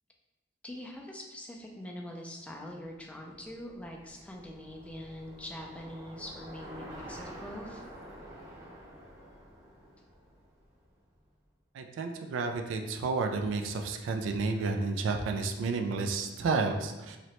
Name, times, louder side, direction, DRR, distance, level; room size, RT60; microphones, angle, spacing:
voice 1, 0.6-7.8, left 1 dB, 5° left, 0 dB, 0.3 m, -43 dB
Bicycle, 2.9-11.1, right 1 dB, 15° right, 0.7 m, -49 dB
voice 2, 11.7-17.2, right 4 dB, 75° right, 5 dB, 0.3 m, -31 dB
3.1 x 2.8 x 2.9 m, 1.1 s
head